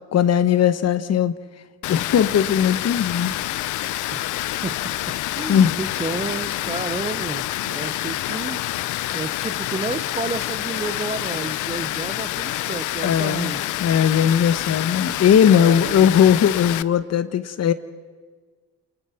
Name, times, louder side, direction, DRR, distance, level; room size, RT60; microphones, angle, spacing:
voice 1, 0.1-1.3 1.9-3.3 5.5-5.8 13.0-13.5 13.8-17.7, left 8 dB, 55° left, 13 dB, 1.2 m, -18 dB
Water, 1.8-16.8, left 15 dB, 80° left, 0.6 m, -27 dB
voice 2, 5.3-8.6 9.1-13.6 15.4-16.3, right 3 dB, 20° right, 13 dB, 1.0 m, -31 dB
28.0 x 20.5 x 5.9 m, 1.5 s
cardioid pair, 90°, 30 cm